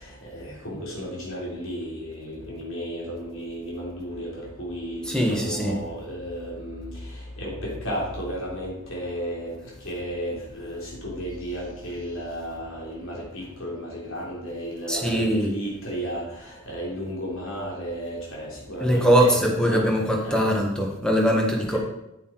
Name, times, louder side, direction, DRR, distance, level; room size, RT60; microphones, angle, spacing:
voice 1, 0.0-9.5 9.8-20.5 21.7-21.8, equal, 70° left, -3 dB, 3.5 m, -33 dB
voice 2, 5.1-5.8 14.9-15.5 18.8-21.8, equal, 5° left, 0 dB, 1.5 m, -21 dB
8.1 x 8.0 x 4.6 m, 0.89 s
head